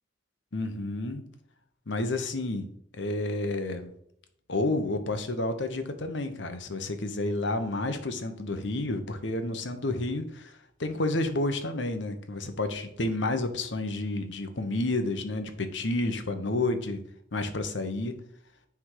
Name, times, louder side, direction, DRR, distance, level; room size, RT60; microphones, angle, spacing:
voice 1, 0.5-1.2 1.9-2.7 2.9-3.9 4.5-17.0 17.3-18.2, left 2 dB, 70° left, 8 dB, 1.0 m, -30 dB
9.9 x 3.6 x 4.8 m, 0.72 s
head